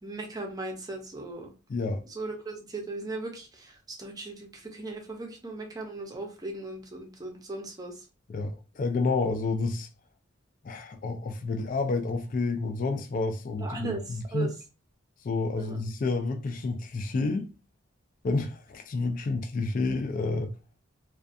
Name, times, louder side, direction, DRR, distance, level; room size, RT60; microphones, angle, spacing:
voice 1, 0.0-1.5 2.0-8.1 13.6-14.5 15.6-15.8, right 2 dB, 20° right, 0.6 m, -37 dB
voice 2, 1.7-2.0 8.3-9.9 10.6-14.5 15.2-17.5 18.2-20.5, left 3 dB, 40° left, 0.3 m, -29 dB
2.5 x 2.2 x 2.5 m
head